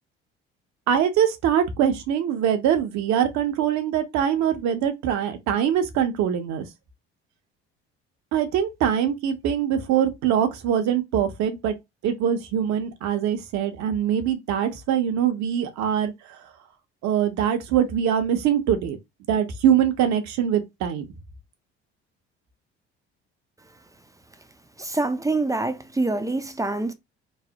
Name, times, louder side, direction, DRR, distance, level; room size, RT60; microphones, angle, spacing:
voice 1, 0.9-6.6 8.3-11.7 12.0-16.1 17.0-19.0 19.3-21.0, right 9 dB, 60° right, 0.8 m, -23 dB
voice 2, 24.8-26.9, right 2 dB, 10° right, 0.4 m, -25 dB
3.1 x 2.1 x 2.7 m
hypercardioid pair, 60°, 32 cm